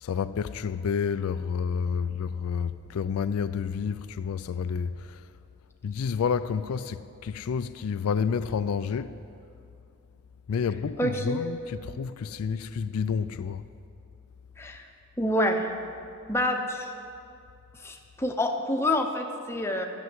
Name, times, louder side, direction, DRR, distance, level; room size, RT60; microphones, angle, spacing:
voice 1, 0.0-5.3 5.8-9.2 10.5-13.7, left 6 dB, 80° left, 0.4 m, -30 dB
voice 2, 11.0-11.4 14.6-14.8 15.2-15.6 16.3-16.9 17.8-19.9, left 1 dB, 10° left, 0.8 m, -27 dB
12.0 x 6.9 x 7.9 m
head